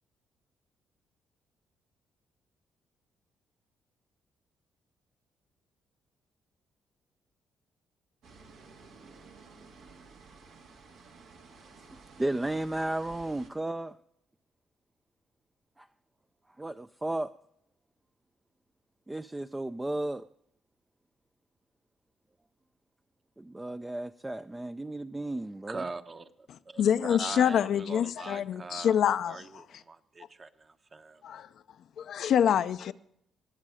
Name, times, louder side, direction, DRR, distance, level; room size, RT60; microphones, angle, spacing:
sound 1, 8.2-13.5, right 4 dB, 85° right, 2.2 m, -53 dB
voice 1, 11.9-14.0 15.8-15.9 16.6-17.3 19.1-20.3 23.4-25.8, right 1 dB, 15° right, 0.4 m, -34 dB
voice 2, 25.7-31.2, right 3 dB, 35° right, 0.9 m, -42 dB
voice 3, 26.5-29.4 31.2-31.5 32.0-32.9, left 9 dB, 70° left, 0.4 m, -26 dB
20.0 x 7.4 x 4.9 m
cardioid pair, 90°, 0 cm